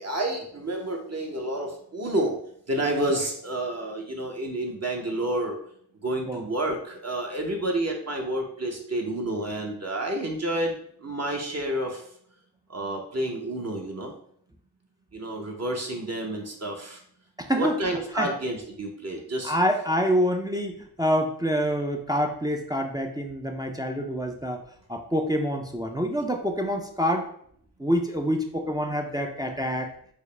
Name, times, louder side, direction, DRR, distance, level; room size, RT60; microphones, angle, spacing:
voice 1, 0.0-2.4 2.7-5.6 6.0-12.0 12.7-14.1 15.1-17.0 17.5-19.5, right 1 dB, 40° right, 1 dB, 0.7 m, -29 dB
voice 2, 17.4-17.8 18.2-18.3 19.4-24.6 24.9-27.3 27.8-29.9, equal, 10° right, 3 dB, 0.4 m, -26 dB
4.7 x 2.0 x 3.2 m, 0.65 s
cardioid pair, 55°, 41 cm